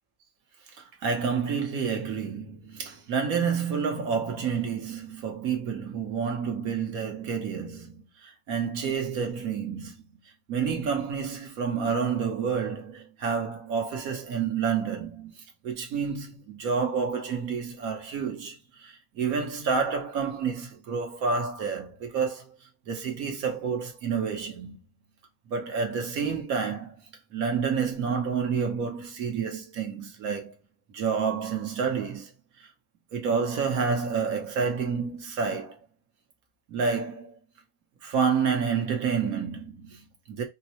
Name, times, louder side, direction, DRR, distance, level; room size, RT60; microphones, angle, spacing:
voice 1, 0.8-10.0 10.5-22.6 22.9-24.8 25.5-27.0 27.3-30.5 30.9-32.3 32.6-32.7 33.1-35.8 36.7-37.3 38.0-40.4, right 6 dB, 80° right, 1.4 m, -29 dB
4.4 x 2.1 x 2.8 m
omnidirectional pair, 1.5 m